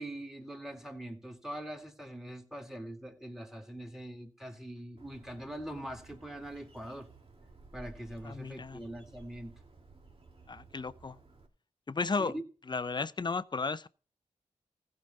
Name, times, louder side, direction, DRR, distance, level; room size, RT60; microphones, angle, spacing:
voice 1, 0.0-7.1 7.7-9.6 12.2-12.4, right 1 dB, 5° right, 2.3 m, -43 dB
Bird, 5.0-11.5, right 3 dB, 45° right, 1.8 m, -55 dB
voice 2, 8.2-8.8 10.5-11.2 11.9-12.3 12.7-13.9, left 4 dB, 35° left, 0.6 m, -34 dB
15.0 x 5.1 x 5.4 m
cardioid pair, 45°, 13 cm